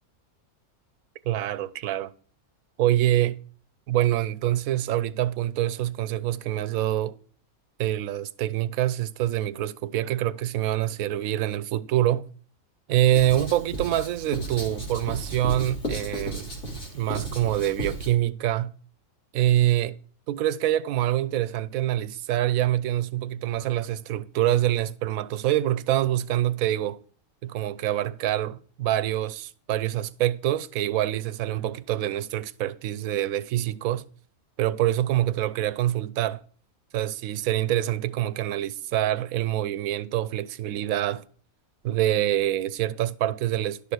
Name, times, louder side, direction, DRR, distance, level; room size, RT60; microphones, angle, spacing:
voice 1, 1.3-2.1 2.8-3.4 3.9-7.2 7.8-12.3 12.9-16.5 16.9-18.7 19.3-20.0 20.3-27.0 27.4-34.1 34.6-36.4 36.9-41.2 41.8-43.9, right 13 dB, 75° right, 1.0 m, -25 dB
Writing, 13.1-18.1, right 2 dB, 55° left, 3.4 m, -34 dB
11.5 x 6.8 x 4.7 m
omnidirectional pair, 1.5 m